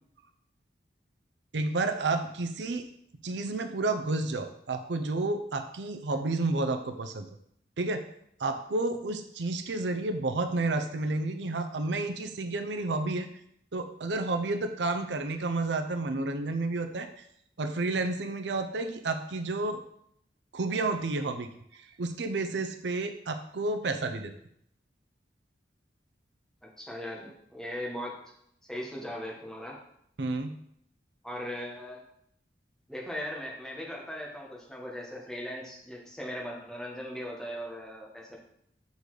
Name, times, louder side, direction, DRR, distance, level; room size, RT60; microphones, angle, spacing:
voice 1, 1.5-2.9 3.2-7.3 7.8-8.0 8.4-13.3 13.7-17.1 17.6-19.8 20.5-21.5 22.0-24.3 30.2-30.5, right 2 dB, 85° right, 7 dB, 0.6 m, -30 dB
voice 2, 26.6-28.2 28.7-29.8 31.2-32.0 32.9-38.4, equal, 5° left, -3 dB, 1.3 m, -39 dB
6.7 x 4.0 x 4.8 m, 0.71 s
head